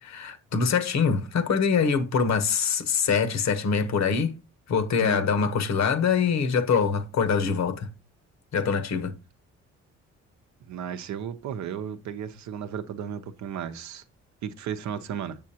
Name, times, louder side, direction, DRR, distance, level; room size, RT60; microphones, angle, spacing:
voice 1, 0.0-4.3 4.7-7.9 8.5-9.1, left 6 dB, 65° left, 1.0 m, -24 dB
voice 2, 10.7-14.0 14.4-15.4, right 8 dB, 70° right, 0.7 m, -34 dB
6.9 x 6.2 x 2.8 m
cardioid pair, 90°, 30 cm